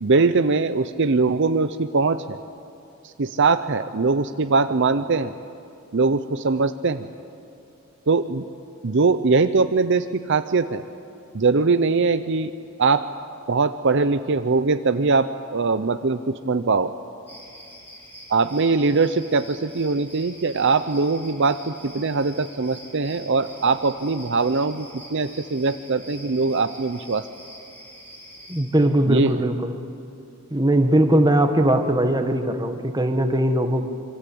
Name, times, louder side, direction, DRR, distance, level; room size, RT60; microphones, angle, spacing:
voice 1, 0.0-2.4 3.0-5.3 5.9-7.1 8.1-8.5 8.8-10.8 11.3-12.5 12.8-13.1 13.5-16.9 18.3-27.3 29.1-29.3, right 4 dB, 55° right, 10 dB, 0.7 m, -21 dB
sound 1, 17.3-28.6, equal, 10° left, 5.8 m, -45 dB
voice 2, 28.5-29.7 30.5-33.9, right 1 dB, 20° right, 5 dB, 1.6 m, -20 dB
25.5 x 24.0 x 8.6 m, 2.5 s
head